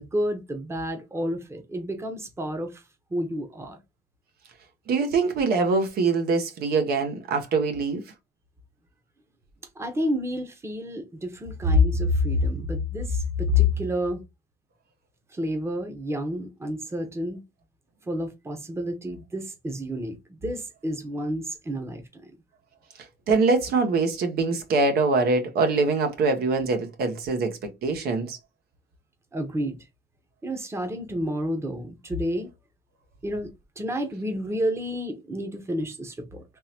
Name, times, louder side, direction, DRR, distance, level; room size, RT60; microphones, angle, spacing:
voice 1, 0.0-2.8 3.1-3.8 9.8-14.2 15.3-17.4 18.1-20.2 20.4-22.3 29.3-29.8 30.4-32.5 33.2-36.4, left 2 dB, 15° right, 0.9 m, -28 dB
voice 2, 4.9-8.0 23.3-28.4, right 4 dB, 65° right, 1.0 m, -23 dB
3.7 x 2.9 x 2.8 m
cardioid pair, 110°, 17 cm